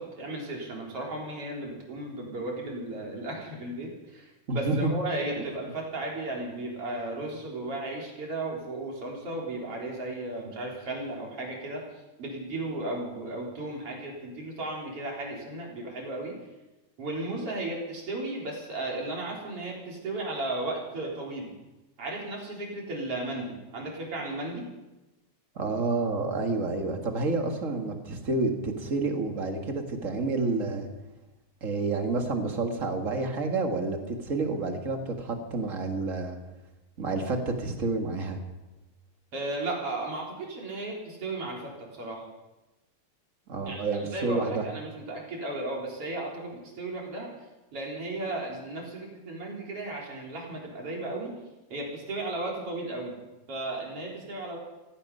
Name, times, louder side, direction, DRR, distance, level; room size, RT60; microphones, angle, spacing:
voice 1, 0.0-16.4 17.0-21.5 22.0-24.7 39.3-42.3 43.6-47.3 47.7-51.3 51.7-53.1 53.5-54.6, right 2 dB, 50° right, -2 dB, 4.7 m, -35 dB
voice 2, 4.5-4.9 25.5-30.9 31.6-36.4 37.0-38.4 43.5-44.6, right 3 dB, 30° right, 4 dB, 1.7 m, -29 dB
16.5 x 16.0 x 5.5 m, 1.0 s
omnidirectional pair, 3.3 m